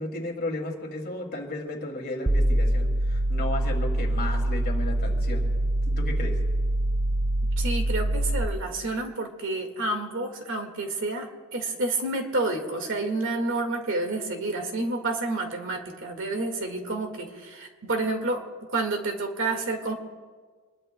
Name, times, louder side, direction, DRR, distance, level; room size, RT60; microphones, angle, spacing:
voice 1, 0.0-5.5 5.8-6.4, left 2 dB, 45° left, 1 dB, 2.5 m, -34 dB
sound 1, 2.3-8.4, right 1 dB, 10° right, 0.4 m, -24 dB
voice 2, 7.6-18.4 18.7-19.9, right 2 dB, 60° right, 4 dB, 1.8 m, -29 dB
26.0 x 21.0 x 2.2 m, 1.5 s
head